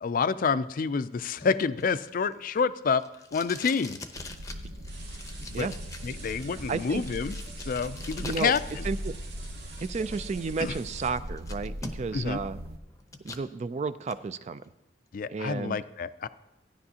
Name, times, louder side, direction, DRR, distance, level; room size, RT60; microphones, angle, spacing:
voice 1, 0.0-3.0 3.3-4.0 5.5-5.7 6.0-8.6 10.6-10.7 12.1-12.4 15.1-16.3, left 5 dB, 50° left, 14 dB, 0.4 m, -28 dB
Packing tape duct tape, 1.4-8.9 9.2-10.2 10.7-10.8 11.1-12.3 12.6-13.5 13.9-14.2, left 3 dB, 20° left, 0.7 m, -44 dB
sound 1, 4.1-12.8, equal, 55° right, 0.7 m, -40 dB
sound 2, 4.9-11.1, right 3 dB, 90° right, 1.9 m, -48 dB
voice 2, 6.7-7.0 8.2-8.5 8.8-9.1 9.8-12.6 13.2-14.6 15.3-15.8, right 4 dB, 40° right, 14 dB, 0.3 m, -32 dB
15.0 x 10.5 x 2.8 m, 0.97 s
head